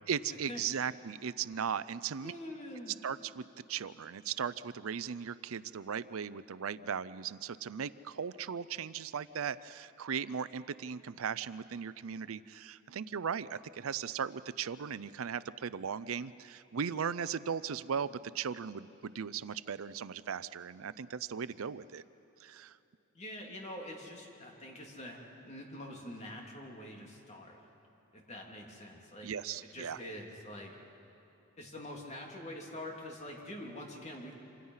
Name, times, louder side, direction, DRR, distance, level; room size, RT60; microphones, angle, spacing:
voice 1, 0.1-2.3 3.0-22.0 22.4-22.8 29.2-30.0, right 7 dB, 80° right, 16 dB, 0.5 m, -37 dB
voice 2, 2.2-3.0 23.1-25.2 25.4-27.6 28.1-29.3 29.6-30.8 31.6-34.3, left 1 dB, 35° left, 0 dB, 3.2 m, -45 dB
27.0 x 26.5 x 5.7 m, 2.9 s
head